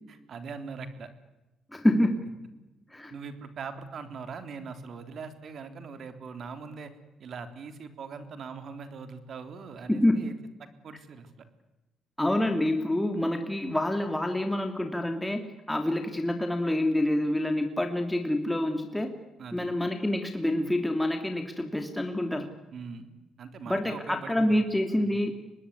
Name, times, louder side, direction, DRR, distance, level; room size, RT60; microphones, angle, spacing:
voice 1, 0.1-1.1 3.1-6.9 7.2-10.3 10.8-11.4 19.4-19.7 22.7-23.1 23.4-24.6 24.9-25.2, right 5 dB, 60° right, 9 dB, 3.4 m, -41 dB
voice 2, 1.7-2.3 2.9-3.1 9.9-10.2 12.2-19.1 19.5-22.5 23.7-25.3, left 1 dB, 10° left, 5 dB, 2.8 m, -27 dB
24.5 x 20.0 x 9.7 m, 1.0 s
cardioid pair, 90°, 0 cm